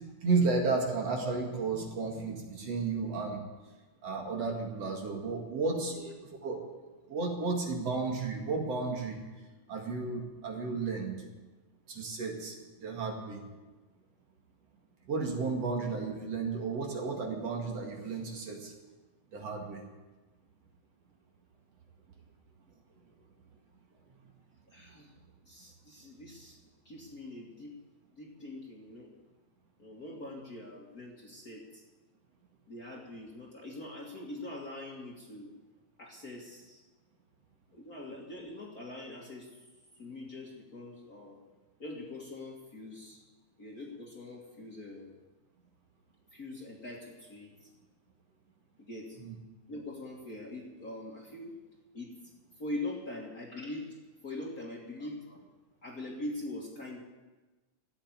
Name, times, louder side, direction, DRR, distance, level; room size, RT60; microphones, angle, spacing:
voice 1, 0.2-3.4 4.0-6.0 6.4-6.6 7.1-9.2 9.7-11.1 11.9-12.6 12.8-13.4 15.1-18.7 19.3-19.8 49.2-49.3, right 4 dB, 60° right, 2 dB, 3.0 m, -33 dB
voice 2, 24.7-25.1 25.5-26.6 26.9-27.8 28.1-29.1 29.8-31.8 32.7-35.5 36.0-36.8 37.7-39.6 40.0-41.4 41.8-43.2 43.6-45.2 46.3-47.7 48.8-49.2 49.7-51.5 51.9-52.1 52.6-54.0 54.2-55.4 55.8-57.0, left 2 dB, 35° left, -2 dB, 1.9 m, -43 dB
14.5 x 8.9 x 9.4 m, 1.2 s
omnidirectional pair, 3.4 m